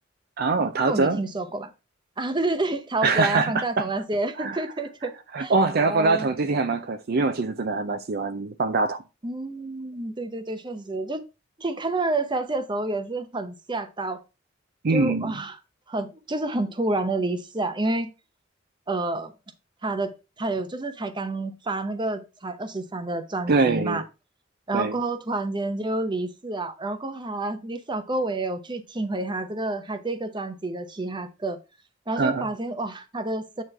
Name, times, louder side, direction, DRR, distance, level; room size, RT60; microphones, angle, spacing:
voice 1, 0.4-1.2 3.0-3.9 4.4-4.6 5.3-9.0 14.8-15.4 23.5-24.0 24.7-25.0 32.2-32.5, right 3 dB, 50° right, 0.5 m, -23 dB
voice 2, 0.9-1.7 2.2-5.1 5.4-5.5 5.8-6.3 9.2-11.2 11.6-14.2 14.9-15.6 15.9-18.1 18.9-19.3 19.8-24.0 24.7-31.6 32.1-33.6, right 2 dB, 25° right, 0.8 m, -29 dB
8.9 x 3.1 x 5.4 m
head